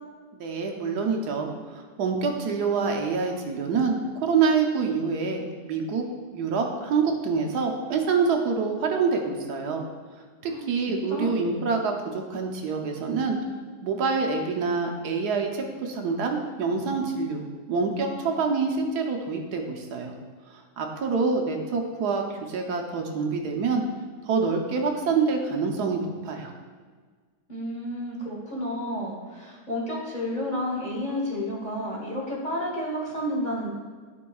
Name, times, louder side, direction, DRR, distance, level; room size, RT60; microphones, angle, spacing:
voice 1, 0.3-6.0 6.3-9.8 10.4-13.4 13.8-20.1 20.8-23.8 24.3-26.5, right 5 dB, 75° right, 2 dB, 1.3 m, -26 dB
voice 2, 10.5-11.3 27.5-33.7, equal, 30° left, -3 dB, 1.2 m, -31 dB
11.5 x 5.2 x 2.3 m, 1.5 s
omnidirectional pair, 1.8 m